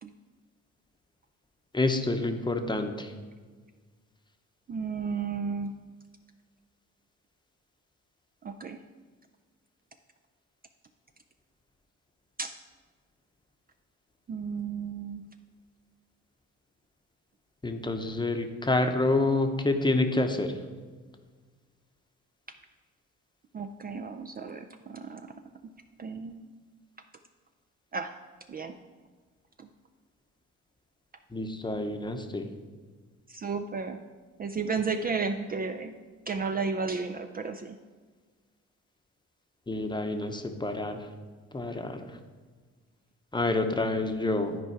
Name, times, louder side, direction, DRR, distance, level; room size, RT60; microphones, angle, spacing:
voice 1, 1.7-3.1 17.6-20.6 31.3-32.5 39.7-41.1 41.5-42.2 43.3-44.6, left 2 dB, 15° left, 5 dB, 0.8 m, -28 dB
voice 2, 4.7-5.7 8.4-8.8 12.4-12.5 14.3-15.2 23.5-25.3 26.0-26.5 27.9-28.1 28.5-28.8 29.6-29.7 33.3-34.0 34.4-35.9 36.3-37.8, right 5 dB, 30° right, 6 dB, 0.4 m, -33 dB
11.0 x 4.6 x 4.6 m, 1.5 s
cardioid pair, 90°, 30 cm